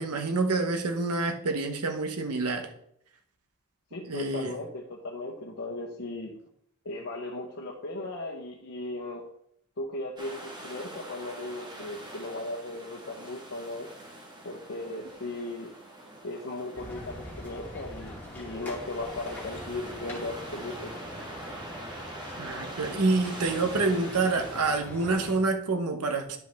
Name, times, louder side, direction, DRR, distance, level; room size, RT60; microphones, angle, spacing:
voice 1, 0.0-2.7 4.1-4.5 22.4-26.4, right 3 dB, 75° right, 5 dB, 0.9 m, -27 dB
voice 2, 3.9-6.3 6.8-9.2 9.8-13.9 14.4-15.7 16.2-20.9, left 2 dB, 60° left, -1 dB, 1.0 m, -37 dB
sound 1, 10.2-24.6, right 1 dB, 20° right, 1.4 m, -44 dB
sound 2, 16.7-25.4, left 1 dB, 10° left, 2.2 m, -42 dB
10.5 x 5.2 x 3.4 m, 0.70 s
head